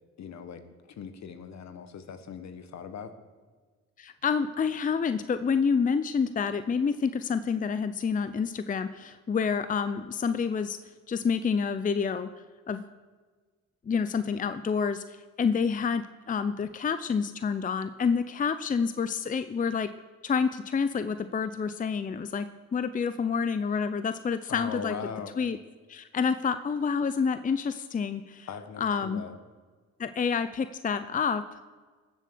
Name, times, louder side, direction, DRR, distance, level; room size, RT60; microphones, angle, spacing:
voice 1, 0.2-3.1 24.5-25.3 28.5-29.3, left 6 dB, 65° left, 9 dB, 1.5 m, -40 dB
voice 2, 4.0-10.8 11.1-12.3 12.7-12.8 13.9-19.9 20.2-22.5 22.7-24.9 25.4-25.6 25.9-28.5 28.8-29.2 30.0-31.6, left 6 dB, 25° left, 11 dB, 0.6 m, -28 dB
19.5 x 7.6 x 6.9 m, 1.4 s
cardioid pair, 90°, 30 cm